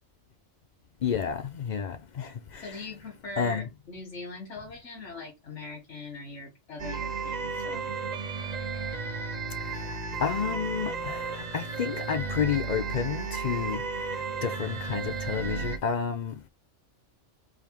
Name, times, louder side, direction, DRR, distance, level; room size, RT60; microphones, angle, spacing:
voice 1, 1.0-2.8 3.4-3.7 9.6-16.5, left 7 dB, 55° left, 0.5 m, -31 dB
voice 2, 2.6-8.1, left 3 dB, 70° left, 1.6 m, -41 dB
sound 1, 6.8-15.8, right 4 dB, 45° right, 0.6 m, -33 dB
3.5 x 3.4 x 4.4 m
omnidirectional pair, 1.2 m